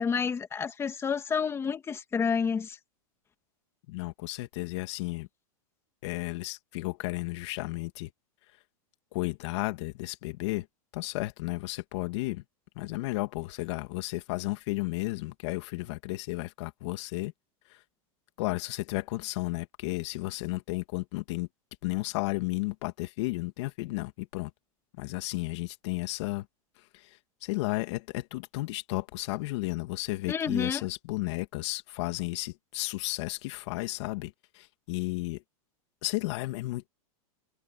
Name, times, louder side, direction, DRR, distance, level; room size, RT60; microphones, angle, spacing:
voice 1, 0.0-2.8 30.3-30.8, left 6 dB, 15° left, 2.4 m, -29 dB
voice 2, 3.9-5.3 6.0-8.1 9.1-10.7 10.9-12.4 12.8-17.3 17.7-17.8 18.4-21.5 21.8-24.5 25.0-26.4 26.9-27.1 27.4-35.4 36.0-36.9, left 20 dB, 50° left, 2.7 m, -33 dB
supercardioid pair, 150°, 18 cm